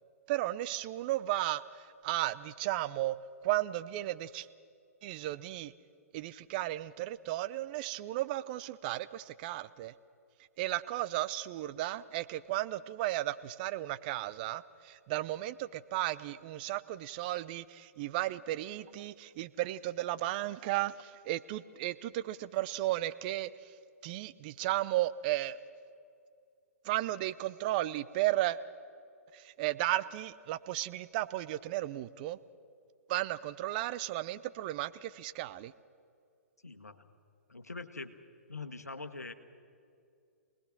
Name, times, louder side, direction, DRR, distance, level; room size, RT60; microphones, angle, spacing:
voice 1, 0.3-3.2 3.4-4.5 5.0-5.7 6.1-9.9 10.6-23.5 24.0-25.6 26.8-28.6 29.3-32.4 33.1-35.7, right 15 dB, 35° right, 15 dB, 0.6 m, -34 dB
voice 2, 36.6-37.0 37.5-38.2 38.5-39.3, left 3 dB, 85° left, 10 dB, 1.4 m, -43 dB
27.0 x 19.5 x 6.1 m, 2.4 s
figure-of-eight pair, 120°, 8 cm